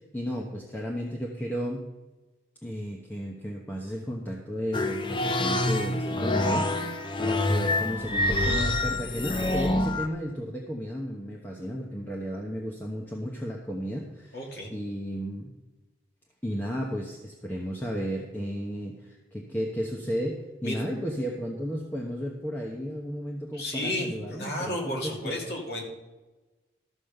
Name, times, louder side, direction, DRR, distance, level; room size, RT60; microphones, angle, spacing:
voice 1, 0.1-1.9 2.6-14.4 14.7-15.5 16.4-25.3, equal, 10° left, -1 dB, 1.0 m, -33 dB
sound 1, 4.7-10.1, left 1 dB, 25° left, 0.7 m, -26 dB
voice 2, 14.3-14.7 20.6-20.8 23.5-25.8, left 1 dB, 60° left, 0 dB, 2.5 m, -32 dB
13.5 x 5.4 x 6.6 m, 1.2 s
head